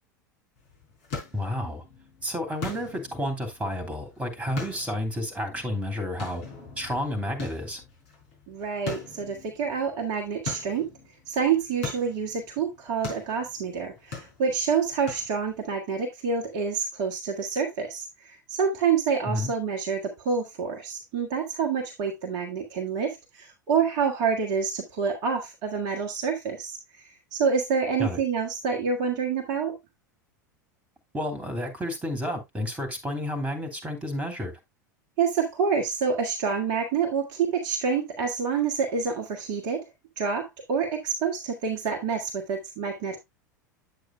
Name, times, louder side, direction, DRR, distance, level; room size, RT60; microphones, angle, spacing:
sound 1, 0.6-15.7, left 4 dB, 50° left, 5.1 m, -42 dB
voice 1, 1.3-1.8 2.2-6.4 6.8-7.8 19.3-19.5 28.0-28.2 31.1-34.5, left 1 dB, 10° right, 2.8 m, -31 dB
voice 2, 8.5-10.9 11.3-29.8 35.2-39.9 40.2-43.2, right 6 dB, 45° right, 1.4 m, -27 dB
9.2 x 8.1 x 2.2 m
figure-of-eight pair, 85°, 10 cm